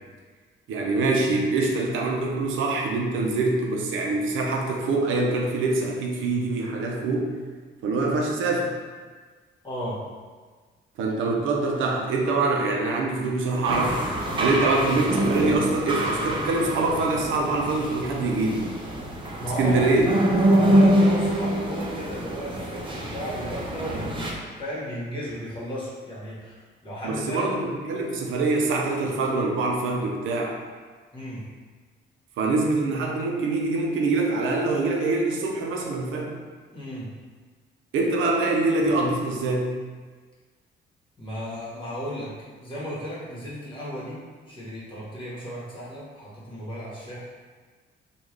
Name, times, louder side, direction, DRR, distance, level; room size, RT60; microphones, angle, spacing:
voice 1, 0.7-7.4 7.8-8.8 11.0-14.0 14.4-18.7 19.6-20.1 27.0-30.6 32.4-36.3 37.9-39.7, right 3 dB, 80° right, 0 dB, 0.6 m, -24 dB
voice 2, 9.6-10.0 19.4-19.9 20.4-26.6 26.8-27.5 31.1-31.4 36.7-37.1 41.2-42.3 42.6-44.2 44.5-47.2, equal, 25° left, -8 dB, 1.4 m, -34 dB
sound 1, 13.6-24.3, right 1 dB, 25° right, 0.6 m, -25 dB
3.6 x 2.4 x 3.1 m, 1.5 s
cardioid pair, 90°, 20 cm